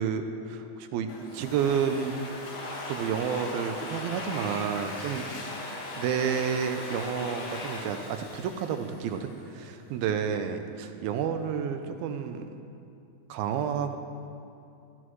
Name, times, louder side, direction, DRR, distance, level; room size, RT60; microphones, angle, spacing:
voice 1, 0.0-2.2 2.9-5.3 6.0-12.5 13.3-14.0, right 7 dB, 80° right, 7 dB, 2.5 m, -30 dB
Domestic sounds home sounds, 1.1-9.5, left 2 dB, 65° left, 3.3 m, -39 dB
19.5 x 13.0 x 3.2 m, 2.6 s
omnidirectional pair, 4.4 m